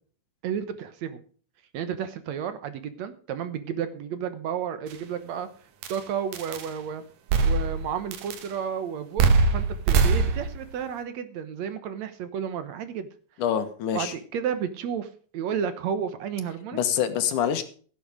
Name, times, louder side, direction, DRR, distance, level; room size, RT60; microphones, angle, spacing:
voice 1, 0.4-1.2 1.7-5.5 5.9-7.0 7.4-13.1 13.9-16.8, right 8 dB, 65° right, 11 dB, 2.2 m, -32 dB
sound 1, 4.9-5.0 5.8-6.0 6.3-6.7 7.3-7.9 8.1-8.5 9.2-10.7, right 4 dB, 90° right, 3.0 m, -22 dB
voice 2, 13.4-14.1 16.7-17.6, left 9 dB, 80° left, 9 dB, 2.9 m, -25 dB
16.5 x 8.3 x 5.0 m, 0.43 s
omnidirectional pair, 3.6 m